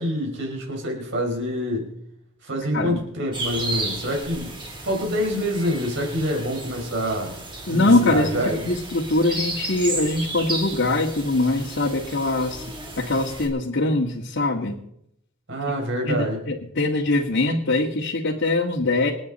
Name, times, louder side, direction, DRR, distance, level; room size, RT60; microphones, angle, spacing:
voice 1, 0.0-2.0 2.4-7.4 7.7-8.7 15.5-16.4, equal, 60° right, 1 dB, 5.3 m, -26 dB
sound 1, 3.3-13.5, right 2 dB, 25° right, 3.7 m, -33 dB
voice 2, 7.7-8.3 8.6-12.6 13.0-14.8 16.1-19.1, left 2 dB, 60° left, -2 dB, 1.8 m, -22 dB
27.5 x 9.3 x 4.2 m, 0.76 s
head